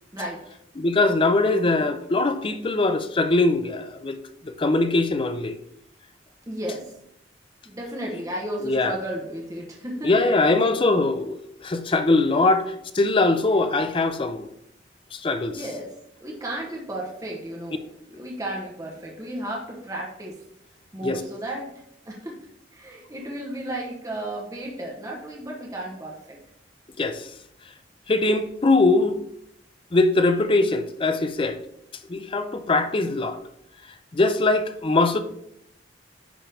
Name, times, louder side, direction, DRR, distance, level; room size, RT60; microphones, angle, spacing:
voice 1, 0.8-4.2 4.4-5.6 8.6-9.0 10.0-14.5 15.1-15.6 21.0-21.2 27.0-27.3 28.1-29.2 29.9-31.6 32.1-33.4 34.1-35.2, left 2 dB, 30° left, 0.5 m, -22 dB
voice 2, 6.5-6.9 7.6-10.4 15.5-15.9 16.2-17.8 18.1-20.4 20.9-21.7 22.0-22.4 22.7-26.4, right 1 dB, 20° right, 1.0 m, -34 dB
10.0 x 3.6 x 3.4 m
head